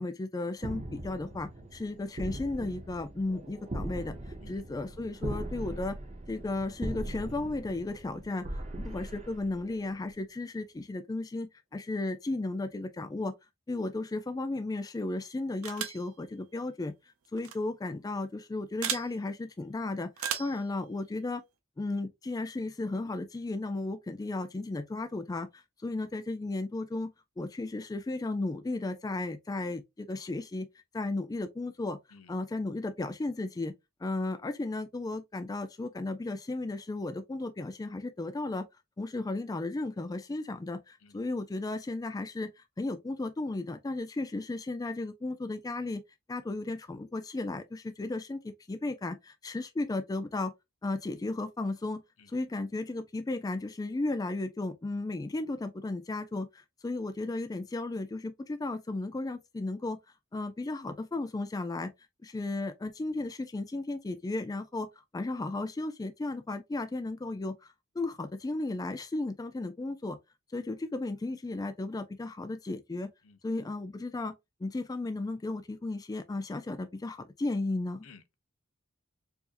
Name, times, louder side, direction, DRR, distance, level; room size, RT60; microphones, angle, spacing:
voice 1, 0.0-4.1 4.5-6.0 6.3-8.4 8.8-13.3 13.7-16.9 17.3-21.4 21.8-30.7 30.9-32.0 32.3-33.7 34.0-38.7 39.0-46.0 46.3-50.5 50.8-52.0 52.3-60.0 60.3-61.9 62.2-64.9 65.1-70.2 70.5-73.1 73.4-74.3 74.6-78.1, left 2 dB, 20° left, 0.3 m, -34 dB
sound 1, 0.6-10.1, right 1 dB, 30° right, 0.9 m, -40 dB
sound 2, 15.6-16.1 17.4-17.6 18.8-19.1 20.2-20.6, right 9 dB, 85° right, 0.7 m, -34 dB
voice 2, 78.0-78.4, left 4 dB, 75° left, 0.7 m, -55 dB
4.7 x 2.6 x 2.5 m
head